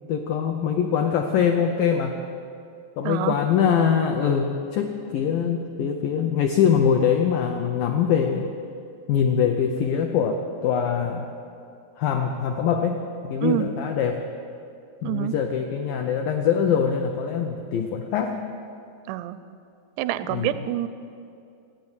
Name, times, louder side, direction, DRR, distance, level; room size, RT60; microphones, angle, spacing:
voice 1, 0.1-2.2 3.0-8.5 9.1-11.3 12.0-14.2 15.0-18.4 20.3-20.5, left 7 dB, 85° left, 4 dB, 1.9 m, -23 dB
voice 2, 3.0-3.4 13.4-13.7 15.0-15.3 19.1-19.4 20.0-20.9, right 15 dB, 90° right, 12 dB, 2.9 m, -26 dB
13.0 x 9.0 x 9.5 m, 2.5 s
omnidirectional pair, 5.0 m